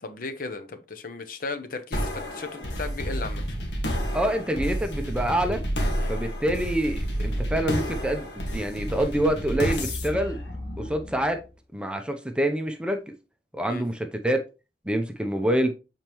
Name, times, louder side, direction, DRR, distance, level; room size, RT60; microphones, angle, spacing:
voice 1, 0.0-3.4 5.9-6.1 13.7-13.8, left 3 dB, 50° left, 0.8 m, -36 dB
sound 1, 1.9-11.4, equal, 80° left, 1.7 m, -30 dB
voice 2, 4.1-5.6 6.1-8.3 8.5-11.4 11.7-13.0 13.5-14.4 14.9-15.7, right 1 dB, 5° right, 0.6 m, -26 dB
7.1 x 4.5 x 3.0 m
head